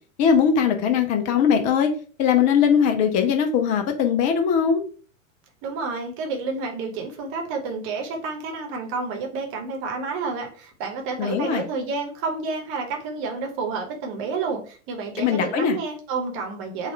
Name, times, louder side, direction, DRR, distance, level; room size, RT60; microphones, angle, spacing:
voice 1, 0.2-1.9 2.2-4.8 11.2-11.6 15.2-15.8, left 7 dB, 20° left, 6 dB, 0.4 m, -20 dB
voice 2, 5.6-16.9, right 4 dB, 30° right, 3 dB, 1.1 m, -30 dB
4.1 x 2.4 x 4.5 m, 0.40 s
figure-of-eight pair, 95°, 40 cm